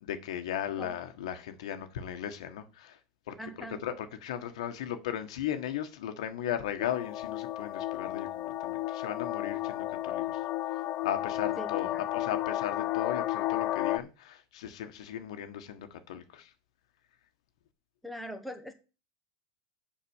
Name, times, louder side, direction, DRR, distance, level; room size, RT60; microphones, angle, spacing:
voice 1, 0.0-3.0 3.3-3.4 3.8-10.4 11.0-16.5, left 10 dB, 90° left, 1.5 m, -36 dB
voice 2, 3.4-3.8 11.6-12.0 18.0-18.7, equal, ahead, 1.1 m, -41 dB
sound 1, 6.8-14.0, left 15 dB, 40° left, 0.5 m, -33 dB
7.6 x 5.4 x 7.2 m
supercardioid pair, 150°, 3 cm